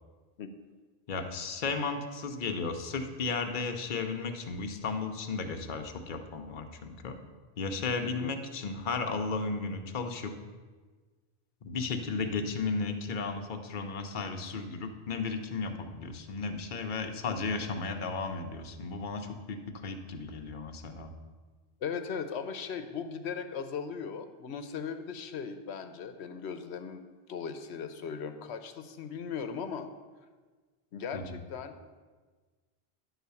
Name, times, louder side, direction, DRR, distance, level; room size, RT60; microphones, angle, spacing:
voice 1, 1.1-7.2 7.6-10.3 11.6-21.1 31.1-31.4, left 4 dB, 50° left, 5 dB, 0.9 m, -34 dB
voice 2, 21.8-27.0 27.3-29.9 30.9-31.8, left 6 dB, 75° left, 8 dB, 1.0 m, -38 dB
10.5 x 4.0 x 6.9 m, 1.4 s
omnidirectional pair, 1.1 m